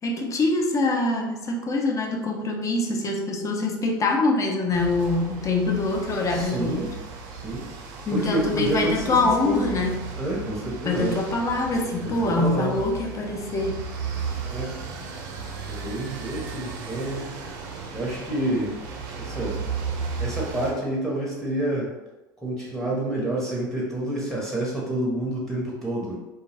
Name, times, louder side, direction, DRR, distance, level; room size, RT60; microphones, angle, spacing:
voice 1, 0.0-6.8 8.1-10.0 10.8-13.8, left 2 dB, 30° left, 1 dB, 0.5 m, -24 dB
sound 1, 4.7-20.7, right 5 dB, 65° right, 0.5 m, -35 dB
voice 2, 6.3-6.9 7.3-7.6 8.1-9.2 9.4-9.6 10.2-11.2 12.0-12.8 14.5-14.8 15.7-17.3 17.9-18.7 19.2-19.6 20.2-21.9 22.4-26.2, right 1 dB, 5° left, -4 dB, 0.9 m, -28 dB
2.2 x 2.2 x 3.2 m, 1.0 s
hypercardioid pair, 85°, 11 cm